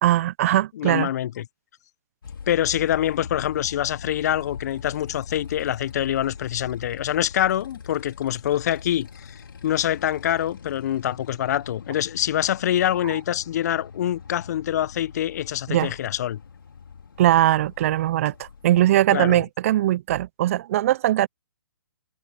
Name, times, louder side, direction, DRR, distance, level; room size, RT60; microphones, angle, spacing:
voice 1, 0.0-1.1 15.7-15.9 17.2-21.3, right 14 dB, 40° right, 0.5 m, -20 dB
voice 2, 0.7-1.5 2.5-9.4 9.6-16.4 19.1-19.4, left 11 dB, 45° left, 0.8 m, -25 dB
Motorcycle, 2.2-18.7, left 6 dB, 70° left, 3.4 m, -42 dB
figure-of-eight pair, 135°, 12 cm